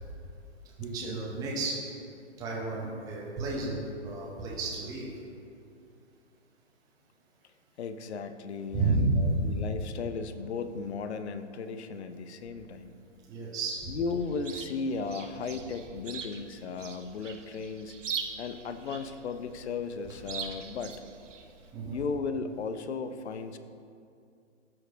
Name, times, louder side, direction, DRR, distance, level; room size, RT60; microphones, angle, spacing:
voice 1, 0.8-1.8 2.4-5.1 8.7-9.3 13.3-13.9 21.7-22.0, right 3 dB, 10° right, -5 dB, 0.8 m, -31 dB
voice 2, 7.8-12.9 13.9-18.0 18.4-21.0 21.9-23.6, left 4 dB, 60° left, 9 dB, 0.6 m, -35 dB
Chirp tweet, 14.1-21.7, right 6 dB, 75° right, 0.8 m, -42 dB
13.5 x 4.5 x 2.6 m, 2.5 s
hypercardioid pair, 130°, 37 cm